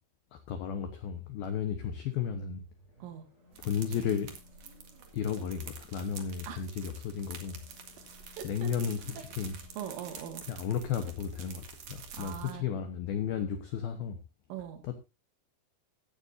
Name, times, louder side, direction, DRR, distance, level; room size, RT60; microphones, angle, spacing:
voice 1, 0.3-2.6 3.6-4.3 5.1-7.6 7.9-8.0 8.4-9.6 10.5-14.2 14.8-15.0, left 8 dB, 75° left, 7 dB, 2.2 m, -34 dB
sound 1, 2.5-11.7, left 2 dB, 25° right, 4.7 m, -59 dB
sound 2, 3.5-12.5, right 6 dB, 65° right, 1.6 m, -48 dB
voice 2, 8.4-8.7 9.8-10.4 12.1-12.6 14.5-14.8, right 10 dB, 80° right, 5 dB, 4.2 m, -41 dB
16.5 x 9.7 x 2.7 m, 0.27 s
omnidirectional pair, 5.8 m